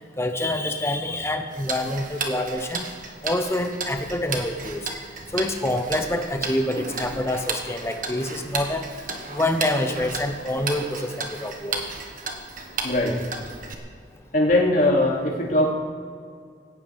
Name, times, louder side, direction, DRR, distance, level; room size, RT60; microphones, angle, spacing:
voice 1, 0.2-2.9 3.2-5.0 5.3-8.9 9.3-11.8, left 1 dB, 15° left, 6 dB, 1.0 m, -26 dB
Tick-tock, 1.5-13.7, right 4 dB, 50° right, 1.6 m, -34 dB
voice 2, 12.8-13.1 14.3-15.7, left 1 dB, 50° left, -2 dB, 2.8 m, -20 dB
18.5 x 17.0 x 3.6 m, 2.1 s
head